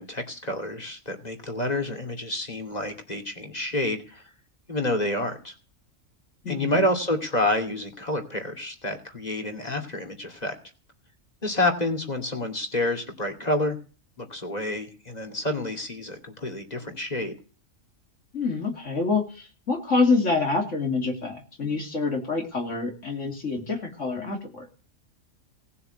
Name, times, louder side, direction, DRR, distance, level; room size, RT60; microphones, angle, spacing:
voice 1, 0.0-4.2 4.7-5.5 6.5-10.5 11.4-13.8 14.2-17.3, left 1 dB, 30° left, 4 dB, 2.6 m, -28 dB
voice 2, 6.4-6.8 18.3-24.7, left 3 dB, 65° left, 3 dB, 3.1 m, -26 dB
18.5 x 7.1 x 8.0 m, 0.38 s
omnidirectional pair, 1.4 m